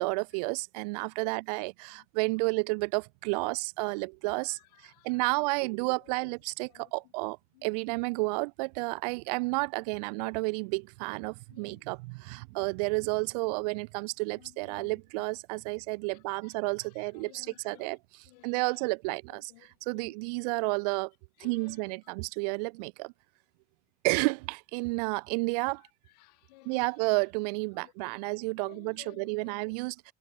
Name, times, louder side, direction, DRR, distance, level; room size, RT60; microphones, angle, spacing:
voice 1, 0.0-4.6 5.0-18.0 18.4-19.4 19.9-21.1 21.4-23.1 24.0-25.8 26.7-30.1, right 29 dB, 85° right, 0.5 m, -31 dB
voice 2, 4.4-5.5 6.0-6.4 6.7-7.1 7.5-7.8 8.3-8.5 9.4-9.5 10.0-10.1 11.5-11.8 14.3-15.2 15.7-15.8 16.1-18.0 18.2-20.2 21.4-22.2 25.8-27.0 27.7-27.9 28.2-28.3 28.6-29.8, left 21 dB, 90° left, 6.2 m, -58 dB
supercardioid pair, 100°, 20 cm